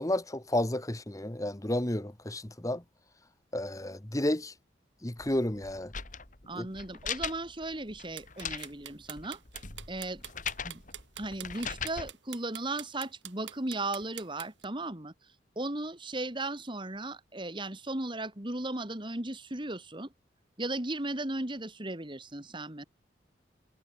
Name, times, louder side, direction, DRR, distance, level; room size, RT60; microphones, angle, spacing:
voice 1, 0.0-2.8 3.5-4.5 5.0-5.9 6.5-6.7, left 1 dB, 20° left, 1.4 m, -31 dB
sound 1, 5.2-12.1, left 7 dB, 45° left, 3.3 m, -40 dB
voice 2, 6.5-9.4 9.9-10.2 10.6-10.8 11.2-15.1 15.6-20.1 20.6-22.8, right 2 dB, 25° right, 2.3 m, -36 dB
sound 2, 8.1-14.6, right 11 dB, 85° right, 3.8 m, -44 dB
head